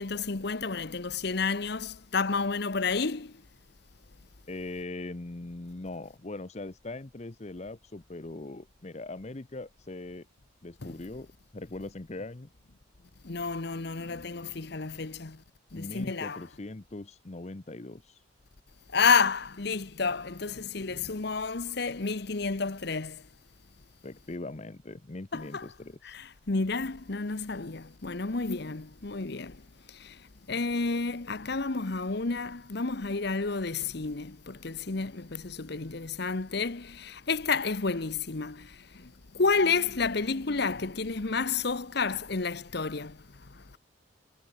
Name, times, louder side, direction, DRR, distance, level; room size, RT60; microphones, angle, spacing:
voice 1, 0.0-3.3 10.8-11.0 13.2-15.4 15.7-16.4 18.9-23.2 25.3-25.7 26.0-29.6 30.0-30.2 30.5-39.1 39.3-43.2, left 4 dB, 55° left, 1.0 m, -30 dB
voice 2, 4.5-10.3 10.6-12.5 15.7-18.2 24.0-26.2, left 2 dB, 35° left, 0.8 m, -41 dB
head